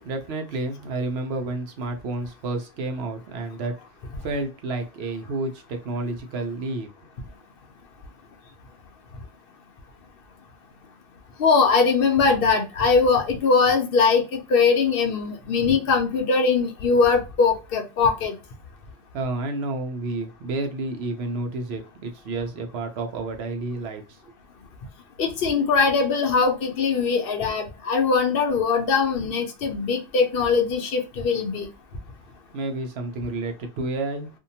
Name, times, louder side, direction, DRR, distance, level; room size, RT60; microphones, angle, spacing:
voice 1, 0.0-3.8 4.2-6.9 19.1-24.2 32.5-34.3, right 2 dB, 80° right, 0.9 m, -30 dB
voice 2, 11.4-18.4 25.2-31.7, left 5 dB, 70° left, 0.8 m, -21 dB
2.7 x 2.2 x 2.7 m
omnidirectional pair, 1.1 m